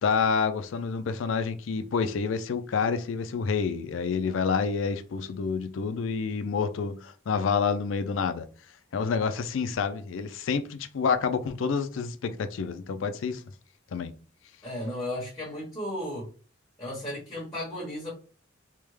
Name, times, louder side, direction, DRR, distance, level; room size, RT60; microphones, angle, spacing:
voice 1, 0.0-8.5 8.9-13.4 13.9-14.1, left 5 dB, 90° left, 0.4 m, -28 dB
voice 2, 14.6-16.3 16.8-18.1, left 1 dB, 15° left, 1.2 m, -34 dB
3.4 x 2.1 x 3.1 m
head